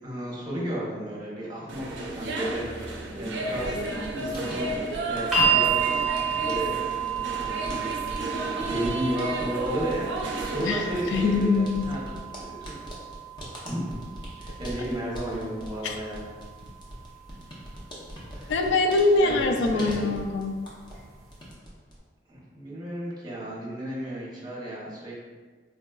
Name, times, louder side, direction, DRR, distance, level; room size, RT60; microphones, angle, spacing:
voice 1, 0.0-4.8 5.1-6.8 7.4-12.0 12.4-12.5 13.6-14.0 14.4-16.3 18.3-18.5 19.2-20.1 22.3-25.1, right 1 dB, 25° right, -6 dB, 0.7 m, -33 dB
sound 1, 1.7-11.4, right 1 dB, 75° right, 0.4 m, -33 dB
sound 2, 3.5-21.0 21.3-22.0, equal, 25° left, 0.6 m, -42 dB
sound 3, 5.3-17.4 18.5-18.6, right 6 dB, ahead, 1.0 m, -31 dB
voice 2, 10.6-11.9 15.8-16.0 18.5-20.5, left 3 dB, 85° left, 5 dB, 0.3 m, -23 dB
3.6 x 2.3 x 2.2 m, 1.4 s
head